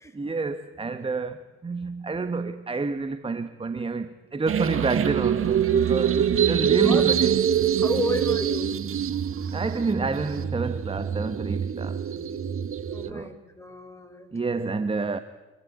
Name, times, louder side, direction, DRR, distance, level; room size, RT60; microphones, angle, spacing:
voice 1, 0.1-7.4 9.5-12.4 13.1-13.4 14.3-15.2, right 4 dB, 15° right, 1.3 m, -29 dB
sound 1, 4.5-13.1, right 9 dB, 40° right, 1.7 m, -24 dB
voice 2, 7.8-8.8 12.9-14.3, left 1 dB, 10° left, 5.5 m, -32 dB
26.5 x 22.5 x 9.2 m
figure-of-eight pair, 55°, 35 cm